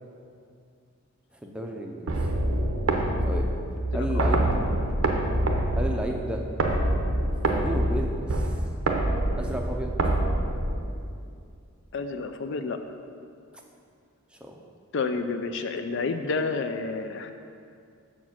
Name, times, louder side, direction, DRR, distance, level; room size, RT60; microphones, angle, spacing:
voice 1, 1.4-2.3 3.2-3.5 3.8-4.6 5.7-6.4 7.5-8.6 9.4-9.9 14.3-14.6, right 1 dB, 5° right, 1 dB, 0.5 m, -33 dB
sound 1, 2.1-11.1, right 1 dB, 75° right, 0.7 m, -26 dB
voice 2, 3.9-4.4 11.9-12.8 14.9-17.3, left 4 dB, 55° left, 8 dB, 0.4 m, -30 dB
7.2 x 4.4 x 5.9 m, 2.3 s
head